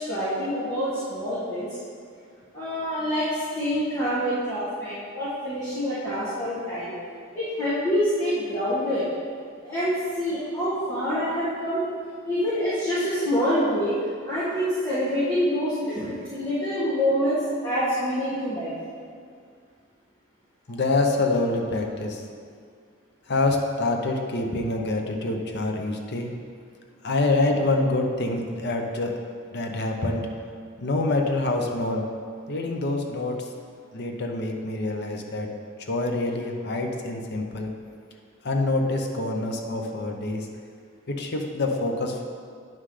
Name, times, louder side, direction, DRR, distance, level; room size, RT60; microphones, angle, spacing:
voice 1, 0.0-1.8 2.5-6.9 7.3-9.1 9.6-11.9 12.2-13.9 14.2-18.8, equal, 20° left, -13 dB, 1.7 m, -26 dB
voice 2, 20.7-22.2 23.3-26.3 27.0-29.2 29.5-30.3 30.8-32.1 32.5-33.5 33.9-35.5 35.9-37.7 38.4-40.5 41.1-42.2, left 2 dB, 60° left, 3 dB, 0.8 m, -26 dB
8.9 x 5.7 x 3.3 m, 2.2 s
head